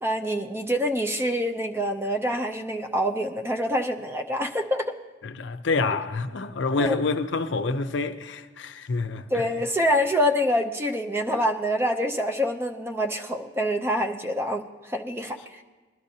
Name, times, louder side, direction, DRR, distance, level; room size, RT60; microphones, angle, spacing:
voice 1, 0.0-4.9 6.8-6.9 9.3-15.6, equal, 10° right, 0.5 m, -26 dB
voice 2, 5.2-9.5, left 3 dB, 70° left, 0.6 m, -27 dB
20.5 x 12.0 x 2.8 m
head